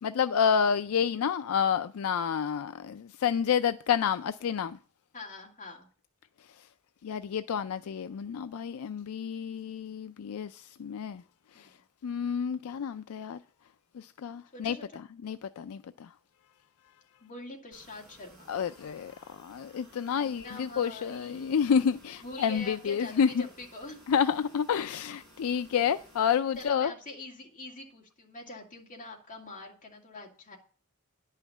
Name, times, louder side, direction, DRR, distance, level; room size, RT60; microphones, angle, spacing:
voice 1, 0.0-4.8 7.0-11.2 11.6-11.7 12.0-13.4 13.9-14.8 15.2-16.1 18.5-23.5 24.1-26.9, left 7 dB, 70° left, 0.4 m, -29 dB
voice 2, 5.1-5.9 11.5-11.7 14.5-14.9 17.2-18.5 20.1-21.6 22.2-24.0 26.6-30.6, left 2 dB, 35° left, 2.5 m, -44 dB
sound 1, 17.7-26.7, equal, ahead, 6.1 m, -57 dB
10.5 x 5.7 x 7.2 m
head